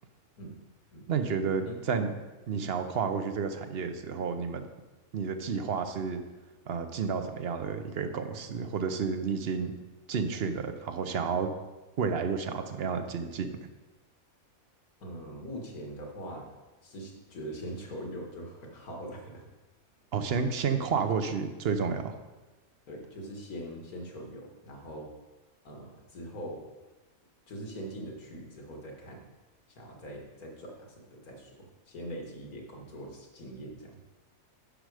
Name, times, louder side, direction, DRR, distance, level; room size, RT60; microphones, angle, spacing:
voice 1, 1.1-2.1 2.5-4.7 5.1-6.2 6.7-9.7 10.1-11.5 12.0-13.5 20.1-22.2, right 5 dB, 50° right, 8 dB, 0.8 m, -31 dB
voice 2, 15.0-16.4 16.8-19.4 22.9-25.1 25.6-26.6 27.5-29.3 29.7-34.0, equal, 80° left, 0 dB, 2.3 m, -42 dB
10.0 x 6.4 x 4.9 m, 1.1 s
omnidirectional pair, 1.5 m